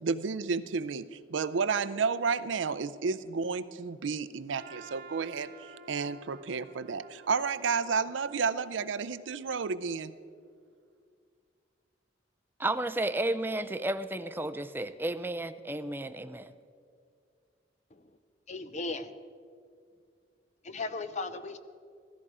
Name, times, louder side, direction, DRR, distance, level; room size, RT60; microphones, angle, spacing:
voice 1, 0.0-5.5 5.9-10.1, right 5 dB, 85° right, 0.5 m, -31 dB
Trumpet, 4.5-9.6, right 4 dB, 50° right, 1.1 m, -53 dB
voice 2, 12.6-16.5, right 1 dB, 10° right, 0.4 m, -32 dB
voice 3, 18.5-19.1 20.6-21.6, left 3 dB, 40° left, 0.7 m, -36 dB
16.0 x 13.5 x 4.9 m
head